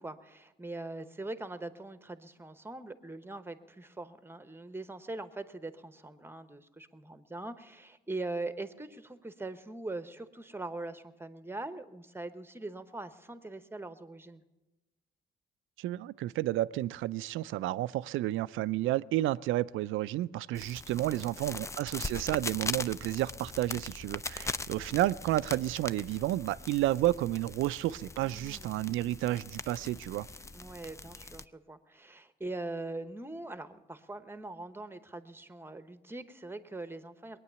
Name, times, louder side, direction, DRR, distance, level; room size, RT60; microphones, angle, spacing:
voice 1, 0.0-14.4 28.2-28.7 30.5-37.4, right 2 dB, 10° right, 11 dB, 1.0 m, -42 dB
voice 2, 15.8-30.3, right 15 dB, 85° right, 16 dB, 0.4 m, -31 dB
sound 1, 20.5-31.4, left 3 dB, 15° left, 0.4 m, -41 dB
20.5 x 9.3 x 6.9 m, 1.1 s
cardioid pair, 90°, 20 cm